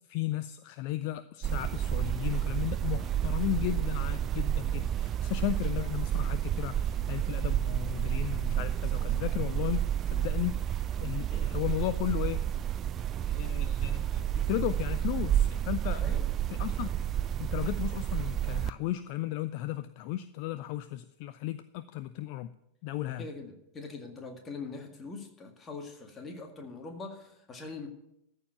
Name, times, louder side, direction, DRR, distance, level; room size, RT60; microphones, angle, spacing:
voice 1, 0.1-9.8 10.1-12.4 13.3-16.0 16.5-22.5 22.8-23.2, left 14 dB, 45° left, 13 dB, 0.4 m, -35 dB
sound 1, 1.4-18.7, right 10 dB, 30° right, 0.3 m, -30 dB
sound 2, 1.6-7.7, right 9 dB, 45° right, 0.9 m, -56 dB
voice 2, 23.2-27.9, left 4 dB, 20° left, 4 dB, 2.0 m, -42 dB
13.5 x 4.7 x 8.8 m, 0.81 s
figure-of-eight pair, 90°, 0 cm